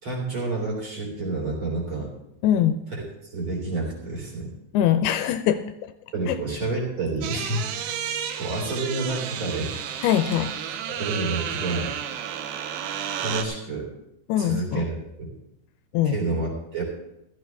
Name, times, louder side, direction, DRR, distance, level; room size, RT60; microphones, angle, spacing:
voice 1, 0.0-2.1 2.9-3.0 3.3-4.5 6.1-7.6 8.4-9.7 10.9-11.9 13.2-13.9 14.4-15.3 16.0-16.8, right 2 dB, 30° right, -1 dB, 3.8 m, -29 dB
voice 2, 2.4-2.8 4.7-5.9 6.3-6.4 10.0-10.5 14.3-14.8 15.9-16.2, left 10 dB, 80° left, 9 dB, 2.5 m, -22 dB
sound 1, 7.2-13.4, right 9 dB, 90° right, 3.1 m, -32 dB
15.0 x 13.0 x 3.5 m, 0.83 s
omnidirectional pair, 4.7 m